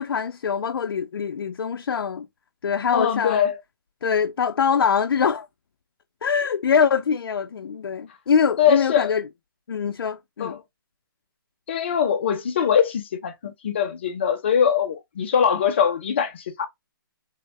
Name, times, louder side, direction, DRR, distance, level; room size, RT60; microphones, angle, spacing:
voice 1, 0.0-2.3 2.6-3.5 4.0-5.5 6.2-9.3 9.7-10.5, left 6 dB, 85° left, 0.4 m, -23 dB
voice 2, 2.9-3.6 8.6-9.1 10.4-10.6 11.7-16.7, left 8 dB, 30° left, 0.6 m, -22 dB
3.5 x 2.1 x 3.1 m
hypercardioid pair, 175°, 12 cm